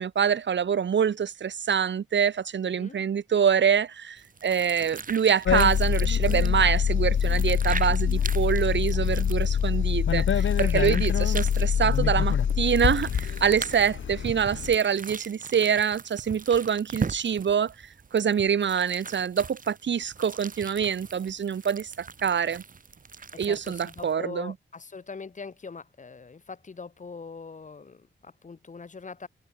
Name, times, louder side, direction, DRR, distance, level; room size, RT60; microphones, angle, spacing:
voice 1, 0.0-17.7 18.1-22.6 23.4-24.5, right 7 dB, 65° right, 2.0 m, -25 dB
sound 1, 4.2-24.1, right 5 dB, 45° right, 6.1 m, -40 dB
sound 2, 5.5-14.8, left 8 dB, 80° left, 2.8 m, -25 dB
voice 2, 23.3-29.3, left 4 dB, 40° left, 7.9 m, -42 dB
wide cardioid pair, 160°, 20 cm